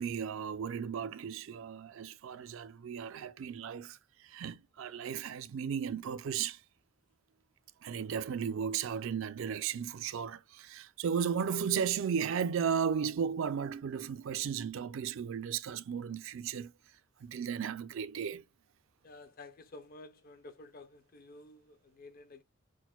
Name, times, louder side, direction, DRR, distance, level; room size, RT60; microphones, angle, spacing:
voice 1, 0.0-4.0 4.2-6.6 7.8-16.7 17.2-18.4, right 7 dB, 65° right, 0.4 m, -35 dB
voice 2, 19.0-22.4, left 2 dB, 40° left, 0.5 m, -52 dB
6.2 x 2.1 x 2.2 m
head